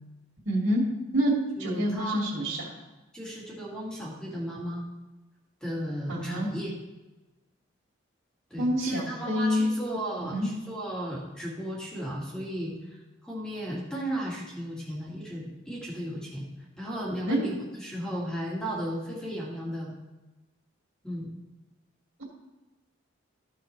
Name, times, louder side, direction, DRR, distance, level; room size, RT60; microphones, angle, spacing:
voice 1, 0.4-0.8 1.1-1.3 1.6-2.7 6.1-6.5 8.6-9.7 10.2-10.5 17.3-17.4, equal, 65° right, -6 dB, 2.6 m, -27 dB
voice 2, 1.6-2.2 3.1-4.9 5.6-6.8 8.5-13.0 13.2-16.5 16.8-17.5 17.8-19.9 21.0-21.3, equal, 5° left, -5 dB, 2.2 m, -35 dB
14.5 x 5.8 x 3.4 m, 1.1 s
head